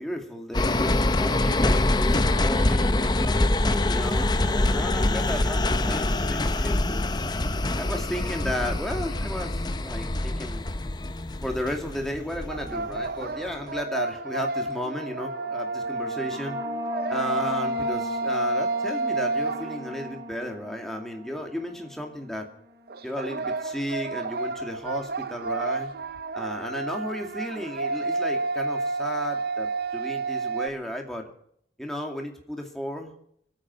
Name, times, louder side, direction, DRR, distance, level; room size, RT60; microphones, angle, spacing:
voice 1, 0.0-3.4 3.8-5.6 5.9-7.1 7.8-10.6 11.4-16.6 17.1-22.5 23.0-25.9 26.3-31.3 31.8-33.1, equal, ahead, 2 dB, 2.4 m, -34 dB
sound 1, 0.5-13.1 13.5-13.6, left 2 dB, 25° left, 0.7 m, -25 dB
sound 2, 12.5-20.3 22.9-30.7, right 2 dB, 60° right, 0.7 m, -30 dB
sound 3, 15.0-22.2, equal, 20° right, 1.7 m, -36 dB
25.5 x 9.0 x 5.4 m, 0.67 s
head